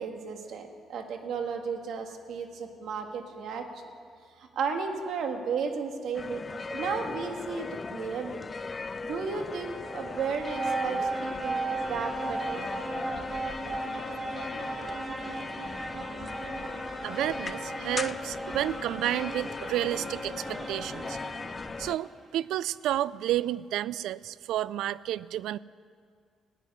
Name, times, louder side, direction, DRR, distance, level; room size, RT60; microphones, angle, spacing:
voice 1, 0.0-3.7 4.4-6.4 6.7-8.4 9.0-12.6, right 5 dB, 70° right, 5 dB, 1.7 m, -34 dB
sound 1, 6.1-22.0, left 4 dB, 25° left, 0.3 m, -38 dB
sound 2, 9.3-22.1, right 2 dB, 25° right, 2.5 m, -36 dB
voice 2, 17.0-21.2 21.8-25.6, right 13 dB, 90° right, 19 dB, 0.3 m, -31 dB
16.0 x 9.2 x 9.8 m, 2.1 s
cardioid pair, 135°, 0 cm